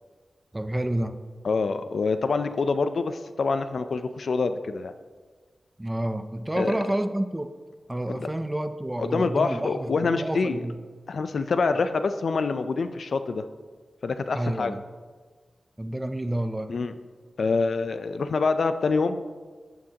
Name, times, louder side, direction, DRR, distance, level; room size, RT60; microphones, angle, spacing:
voice 1, 0.5-1.2 5.8-7.5 7.9-10.8 14.3-14.8 15.8-16.7, right 1 dB, 15° right, 10 dB, 0.5 m, -29 dB
voice 2, 1.4-4.9 6.6-6.8 8.1-8.3 9.0-10.6 11.1-13.4 14.0-14.8 16.7-16.9 17.4-19.3, left 4 dB, 65° left, 10 dB, 0.5 m, -26 dB
14.0 x 8.7 x 2.9 m, 1.5 s
wide cardioid pair, 120°, 0 cm